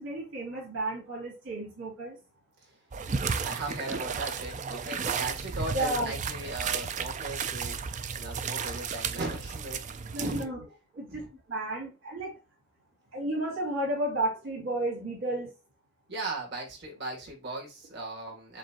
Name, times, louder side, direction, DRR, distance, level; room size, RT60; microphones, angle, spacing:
voice 1, 0.0-2.2 5.7-6.2 10.1-10.6 10.9-12.3 13.1-15.5, right 1 dB, 90° right, -2 dB, 2.7 m, -32 dB
sound 1, 2.9-10.5, right 6 dB, 40° right, 0.4 m, -33 dB
voice 2, 3.4-7.8 8.1-10.5 11.1-11.3 16.1-18.6, right 2 dB, 60° right, 0 dB, 1.9 m, -38 dB
7.4 x 2.5 x 2.9 m, 0.28 s
head